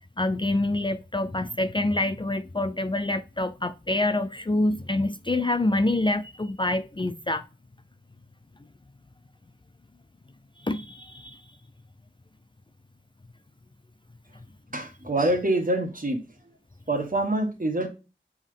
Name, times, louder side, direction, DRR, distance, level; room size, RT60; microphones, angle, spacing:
voice 1, 0.2-7.5 10.6-11.4, left 2 dB, 25° left, 0.4 m, -26 dB
voice 2, 14.7-16.2 16.9-17.9, right 1 dB, 45° right, 1.7 m, -25 dB
7.2 x 3.8 x 3.5 m
wide cardioid pair, 45°, 20 cm